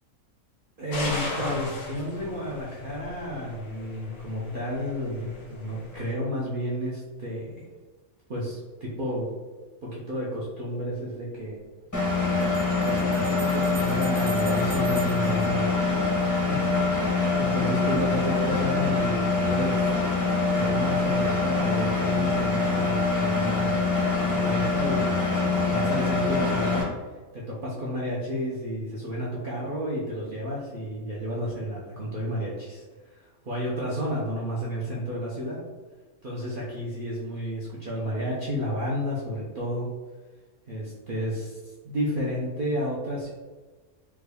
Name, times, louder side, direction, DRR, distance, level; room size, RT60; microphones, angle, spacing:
voice 1, 0.8-7.6 8.3-9.3 9.8-11.6 12.8-16.9 17.4-19.9 20.5-23.8 24.3-25.0 25.3-26.9 27.3-32.8 33.1-35.6 36.2-39.9 40.7-43.3, equal, 55° right, -5 dB, 0.6 m, -31 dB
sound 1, 0.9-6.1, left 2 dB, 90° left, 1.3 m, -36 dB
sound 2, 10.8-10.9 12.4-16.4, right 4 dB, 75° right, 1.2 m, -44 dB
Engine, 11.9-26.8, left 3 dB, 20° left, 0.5 m, -24 dB
3.4 x 2.2 x 3.3 m, 1.3 s
omnidirectional pair, 1.5 m